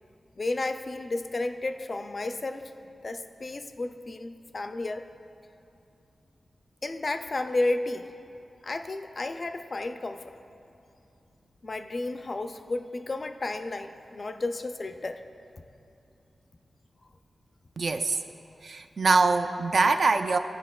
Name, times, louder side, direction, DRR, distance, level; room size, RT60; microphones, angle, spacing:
voice 1, 0.4-2.7 3.0-5.0 6.8-8.1 8.6-10.4 11.6-15.2, left 2 dB, 40° left, 8 dB, 0.3 m, -32 dB
voice 2, 17.8-18.2 18.6-20.4, right 3 dB, 60° right, 8 dB, 0.3 m, -23 dB
14.0 x 5.5 x 2.3 m, 2.7 s
wide cardioid pair, 110°, 0 cm